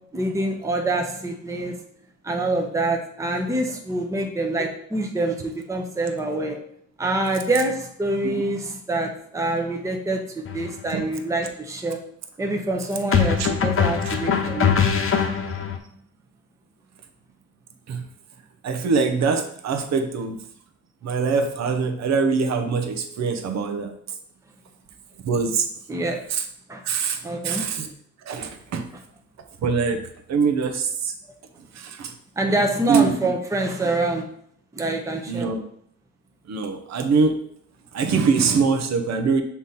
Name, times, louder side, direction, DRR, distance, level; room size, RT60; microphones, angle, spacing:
voice 1, 0.1-1.8 2.2-6.6 7.0-12.0 12.4-14.9 25.9-26.2 26.7-26.8 27.2-27.7 32.4-34.2 34.7-35.5, right 2 dB, 10° right, 2 dB, 0.8 m, -26 dB
sound 1, 10.5-10.7 13.1-15.8, left 7 dB, 45° left, 0.9 m, -22 dB
voice 2, 18.6-20.4 21.0-23.9 25.2-25.7 26.3-26.4 26.8-27.9 28.3-28.8 29.6-30.0 30.3-31.1 31.8-32.1 32.5-32.6 32.9-33.1 35.3-35.6 36.5-37.4 37.9-39.4, right 5 dB, 60° right, 6 dB, 0.9 m, -23 dB
6.0 x 3.7 x 4.2 m, 0.66 s
cardioid pair, 90°, 30 cm